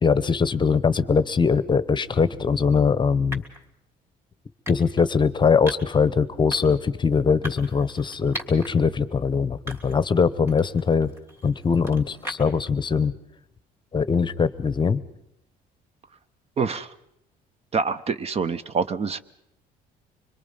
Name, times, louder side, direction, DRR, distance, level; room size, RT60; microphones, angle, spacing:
voice 1, 0.0-3.4 4.7-11.1 11.4-13.1 13.9-15.0, left 5 dB, 25° left, 16 dB, 0.8 m, -21 dB
sound 1, 2.0-2.2 3.3-3.6 4.6-5.1 5.7-6.0 6.5-6.8 7.4-8.7 9.1-9.2 9.7-10.1 10.5-12.7, equal, 15° right, 3.0 m, -39 dB
voice 2, 16.6-16.9 17.7-19.2, right 5 dB, 40° right, 14 dB, 0.7 m, -26 dB
25.5 x 22.0 x 5.5 m, 0.79 s
cardioid pair, 110°, 17 cm